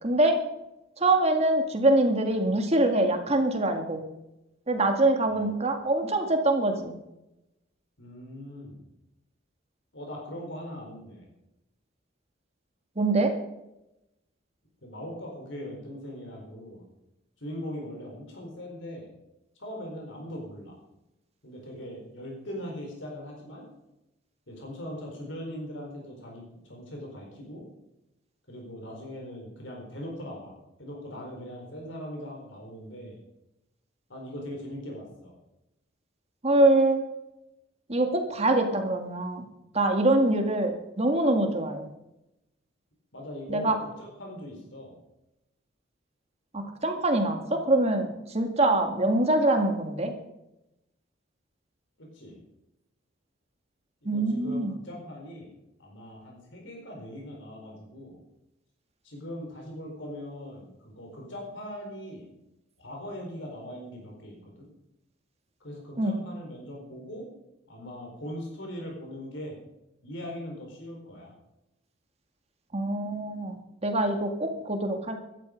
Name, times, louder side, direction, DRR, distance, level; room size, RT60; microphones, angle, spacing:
voice 1, 0.0-0.4 1.0-4.0 4.7-7.0 13.0-13.3 36.4-37.0 37.9-39.5 39.7-41.9 43.5-43.8 46.5-50.1 54.1-54.7 66.0-66.2 72.7-75.2, right 2 dB, 35° right, 5 dB, 2.0 m, -24 dB
voice 2, 8.0-8.8 9.9-11.3 14.8-16.8 17.4-19.1 19.6-20.8 21.4-23.6 24.5-27.7 28.5-30.5 30.8-33.1 34.1-35.3 43.1-45.0 52.0-52.4 54.0-55.5 55.8-58.2 59.0-62.2 62.8-64.7 65.6-67.3 67.7-69.6 70.0-71.3, equal, 70° left, 0 dB, 4.4 m, -40 dB
16.0 x 12.5 x 5.2 m, 0.90 s
head